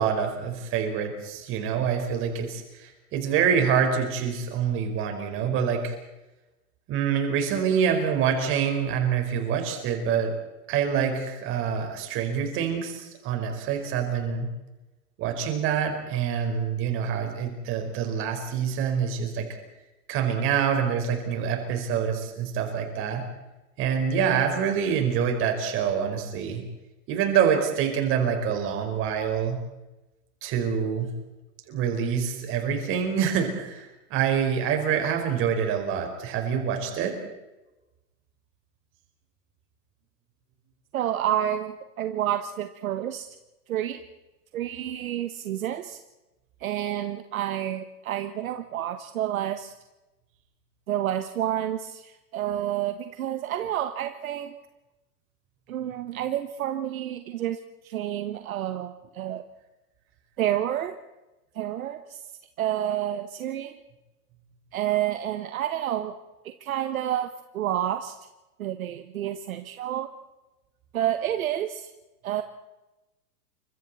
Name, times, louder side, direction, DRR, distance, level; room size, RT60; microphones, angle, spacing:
voice 1, 0.0-6.0 6.9-10.3 10.7-14.5 15.2-19.5 20.1-23.2 23.8-26.6 27.1-29.6 30.4-31.1 31.7-37.2, right 7 dB, 25° right, 5 dB, 4.7 m, -26 dB
voice 2, 40.9-43.3 43.7-44.0 44.5-46.0 46.6-49.7 50.9-54.6 55.7-57.6 57.8-59.4 60.4-60.9 61.5-62.2 62.6-63.7 64.7-66.1 66.4-67.3 67.5-68.2 68.6-70.1 70.9-71.9 72.2-72.4, right 11 dB, 60° right, 8 dB, 1.5 m, -29 dB
29.5 x 25.5 x 4.3 m, 1.0 s
hypercardioid pair, 150°, 48 cm